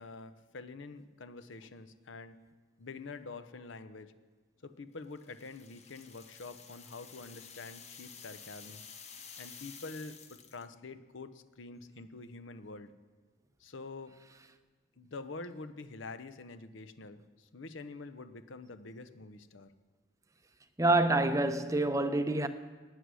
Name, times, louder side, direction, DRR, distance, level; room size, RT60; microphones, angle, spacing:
voice 1, 0.0-2.4 2.8-4.1 4.6-8.8 9.4-12.9 13.6-14.2 15.0-19.7, left 3 dB, 70° left, 0.8 m, -46 dB
sound 1, 5.2-10.7, left 6 dB, 35° left, 0.9 m, -51 dB
voice 2, 20.8-22.5, right 2 dB, 15° right, 0.6 m, -27 dB
16.5 x 9.7 x 6.3 m
head